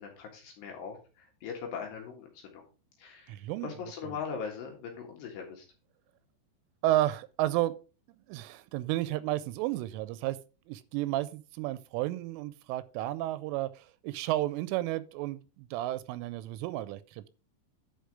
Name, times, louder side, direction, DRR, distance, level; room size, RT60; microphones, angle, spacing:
voice 1, 0.0-2.7 3.0-5.7, left 6 dB, 65° left, 3.5 m, -40 dB
voice 2, 3.3-3.8 4.0-4.1 6.8-7.8 8.3-10.4 10.7-17.3, right 15 dB, 85° right, 3.1 m, -32 dB
10.5 x 5.0 x 4.8 m
omnidirectional pair, 5.7 m